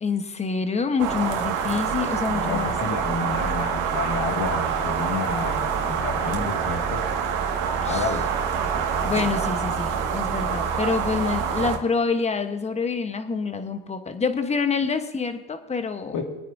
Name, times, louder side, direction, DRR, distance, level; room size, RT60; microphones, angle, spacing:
voice 1, 0.0-2.8 7.8-8.0 9.0-16.2, left 5 dB, 20° left, 8 dB, 1.2 m, -27 dB
sound 1, 1.0-11.8, right 7 dB, 60° right, 2.0 m, -26 dB
voice 2, 2.3-7.0 7.9-8.2 16.1-16.2, left 4 dB, 55° left, 3 dB, 2.2 m, -30 dB
25.0 x 9.2 x 2.7 m, 1.0 s
supercardioid pair, 105°, 36 cm